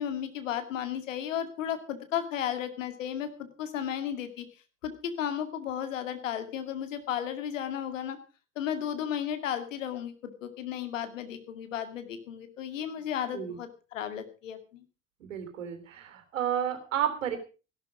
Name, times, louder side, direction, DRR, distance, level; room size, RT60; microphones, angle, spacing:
voice 1, 0.0-4.4 4.8-8.2 8.6-14.8, left 9 dB, 75° left, 9 dB, 2.2 m, -34 dB
voice 2, 15.2-17.4, right 9 dB, 75° right, 8 dB, 3.0 m, -31 dB
16.0 x 12.0 x 5.0 m, 0.34 s
figure-of-eight pair, 60°, 38 cm